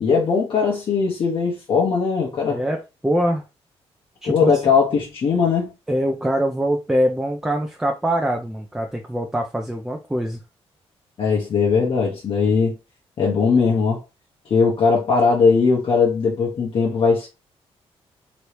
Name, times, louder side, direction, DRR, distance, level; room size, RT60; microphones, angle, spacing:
voice 1, 0.0-2.6 4.2-5.7 11.2-12.8 13.2-14.0 14.5-17.3, left 5 dB, 55° left, 0.9 m, -19 dB
voice 2, 2.5-3.4 4.2-4.5 5.9-10.4, equal, 5° right, 0.4 m, -23 dB
3.0 x 2.7 x 3.1 m
cardioid pair, 120°, 11 cm